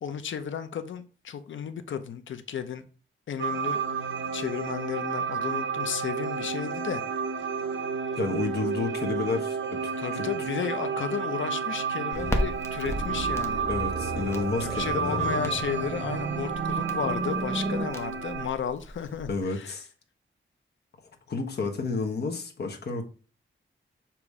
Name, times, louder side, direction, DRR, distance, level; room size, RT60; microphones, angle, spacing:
voice 1, 0.0-2.8 3.3-4.0 4.3-7.0 10.0-13.6 14.6-19.7, left 8 dB, 70° left, 0.6 m, -33 dB
sound 1, 3.4-18.5, right 6 dB, 70° right, 0.7 m, -31 dB
voice 2, 8.1-9.6 10.1-10.2 13.7-15.5 19.3-19.9 21.3-23.0, left 4 dB, 55° left, 1.2 m, -30 dB
Crackle, 12.1-19.4, equal, 15° left, 0.8 m, -37 dB
sound 2, 12.9-17.9, right 2 dB, 30° right, 1.0 m, -34 dB
7.0 x 3.0 x 4.8 m
wide cardioid pair, 160°, 20 cm